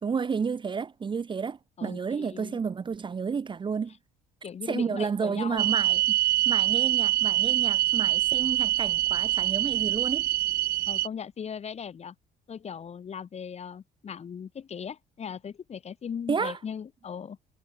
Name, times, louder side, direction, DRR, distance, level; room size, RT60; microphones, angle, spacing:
voice 1, 0.0-3.9 4.7-10.2 16.3-16.6, right 5 dB, 30° right, 1.0 m, -31 dB
voice 2, 1.8-2.6 4.4-5.7 10.9-12.1 12.5-17.4, left 7 dB, 40° left, 2.9 m, -38 dB
sound 1, 5.6-11.1, right 14 dB, 65° right, 1.1 m, -25 dB
cardioid pair, 110°, 17 cm